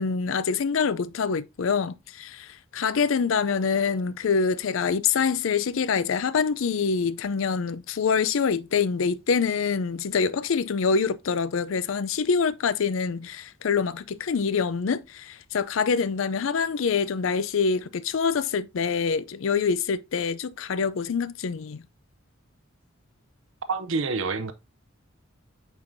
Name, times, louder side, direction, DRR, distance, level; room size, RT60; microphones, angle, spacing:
voice 1, 0.0-21.8, left 5 dB, 70° left, 0.4 m, -25 dB
voice 2, 23.7-24.5, right 4 dB, 65° right, 0.6 m, -27 dB
8.7 x 4.5 x 2.6 m
head